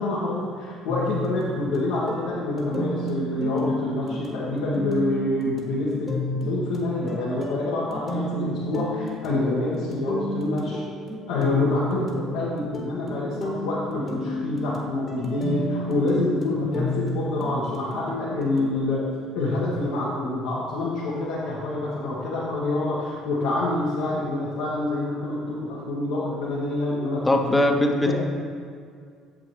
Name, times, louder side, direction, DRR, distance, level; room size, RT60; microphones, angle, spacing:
voice 1, 0.0-6.1 6.4-10.8 11.3-19.0 19.3-27.6 28.0-28.1, left 2 dB, 75° left, -8 dB, 1.5 m, -27 dB
sound 1, 0.9-18.8, left 1 dB, 35° left, 1.5 m, -32 dB
voice 2, 27.3-28.1, left 1 dB, 15° left, 3 dB, 1.0 m, -20 dB
8.9 x 7.5 x 3.3 m, 2.1 s
hypercardioid pair, 60°, 0 cm